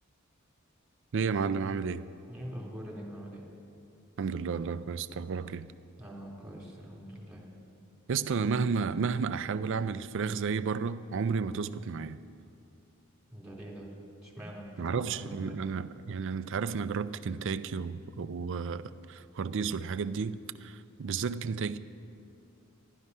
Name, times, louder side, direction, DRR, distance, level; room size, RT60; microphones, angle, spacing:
voice 1, 1.1-2.1 4.2-5.7 8.1-12.2 14.8-21.8, right 5 dB, 60° right, 0.4 m, -32 dB
voice 2, 2.3-3.5 6.0-7.5 13.3-13.9 14.2-15.6, equal, 5° right, 3.0 m, -44 dB
14.0 x 11.5 x 5.4 m
head